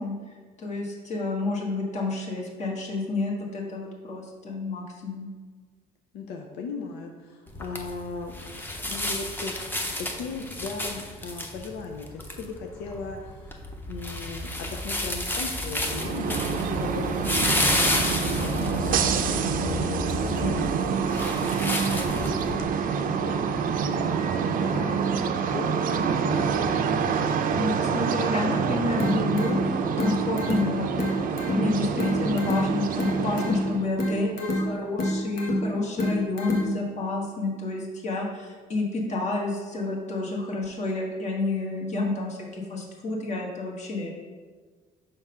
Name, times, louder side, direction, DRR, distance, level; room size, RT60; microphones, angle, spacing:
voice 1, 0.0-5.3 27.5-44.1, left 2 dB, 45° left, -1 dB, 1.4 m, -30 dB
voice 2, 6.1-8.4 8.8-9.5 9.9-13.6 13.9-18.1 18.4-19.3 19.6-26.9, left 4 dB, 85° left, 2 dB, 0.6 m, -38 dB
sound 1, 7.5-22.6, left 1 dB, 10° left, 0.8 m, -31 dB
sound 2, 15.8-33.9, right 6 dB, 55° right, 0.5 m, -27 dB
sound 3, 29.0-37.0, left 1 dB, 65° left, 1.1 m, -29 dB
5.3 x 3.6 x 5.5 m, 1.5 s
cardioid pair, 110°, 17 cm